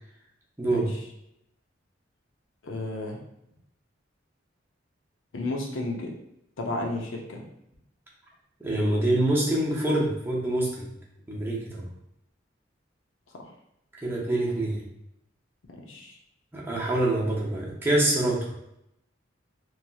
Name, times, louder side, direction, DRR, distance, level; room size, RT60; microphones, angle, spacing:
voice 1, 0.6-0.9 8.6-10.9 11.3-11.9 14.0-14.8 16.5-18.4, right 1 dB, 10° right, -4 dB, 0.7 m, -25 dB
voice 2, 2.6-3.2 5.3-6.1 6.6-7.4 15.7-16.2, left 2 dB, 85° left, 0 dB, 0.6 m, -33 dB
3.0 x 2.8 x 2.3 m, 0.80 s
head